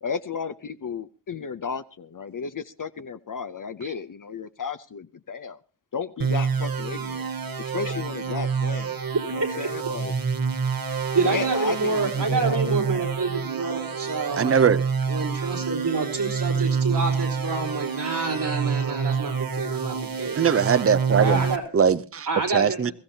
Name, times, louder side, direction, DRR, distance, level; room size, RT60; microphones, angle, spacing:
voice 1, 0.0-5.6 5.9-7.3 7.7-9.0 9.3-10.1 11.2-13.0, left 6 dB, 50° left, 0.6 m, -33 dB
sound 1, 6.2-21.6, right 6 dB, 60° right, 1.4 m, -27 dB
voice 2, 11.1-14.7 15.1-20.4 21.2-21.6 22.3-22.9, right 3 dB, 80° right, 3.7 m, -28 dB
voice 3, 14.4-14.8 20.4-21.4 21.7-22.3 22.5-22.9, right 7 dB, 35° right, 0.6 m, -20 dB
22.0 x 14.5 x 2.8 m
wide cardioid pair, 95°, 40 cm